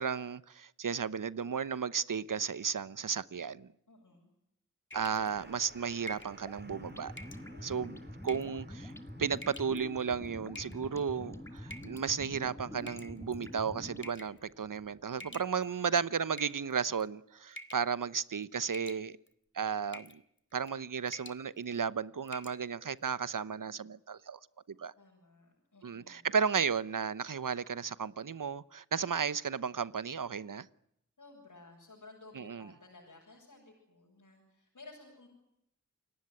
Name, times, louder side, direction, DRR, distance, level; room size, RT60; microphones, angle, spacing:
voice 1, 0.0-3.7 4.9-7.1 7.6-8.0 8.2-8.9 9.2-19.2 19.5-20.2 20.5-24.4 24.8-24.9 25.8-30.7 32.4-32.7, right 6 dB, 80° right, 1.0 m, -34 dB
voice 2, 3.9-4.3 7.5-8.2 15.8-16.2 25.0-26.3 31.2-35.3, left 3 dB, 75° left, 7.9 m, -56 dB
sound 1, 4.9-5.3 6.1-6.4 7.2-7.5 8.2-8.6 9.4-9.8 10.6-11.0 11.7-12.0 12.9-13.4 14.0-14.4 15.2-15.9 16.3-17.0 17.6-17.9 18.2-18.4 18.7-19.3 19.9-20.2 20.5-20.8 21.1-21.4 21.8-21.9 22.3-22.6, left 1 dB, 40° left, 2.2 m, -48 dB
sound 2, 4.9-15.4, right 2 dB, 35° right, 5.3 m, -58 dB
sound 3, 6.5-14.1, left 1 dB, 10° left, 2.5 m, -46 dB
29.0 x 18.0 x 9.7 m
wide cardioid pair, 55°, 31 cm